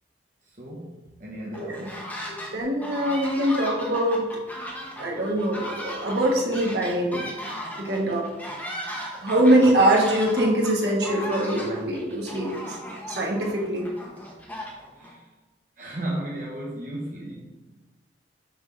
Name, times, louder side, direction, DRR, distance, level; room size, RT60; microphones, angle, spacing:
voice 1, 0.4-2.3 15.0-15.3 15.8-17.6, right 1 dB, 45° right, -5 dB, 1.1 m, -35 dB
sound 1, 1.5-2.5 2.8-15.1, equal, 10° left, 0.9 m, -36 dB
voice 2, 2.2-4.2 5.0-7.2 7.8-8.2 9.2-12.8 13.1-13.9, right 1 dB, 60° right, -2 dB, 1.4 m, -23 dB
6.3 x 3.6 x 5.2 m, 1.2 s
head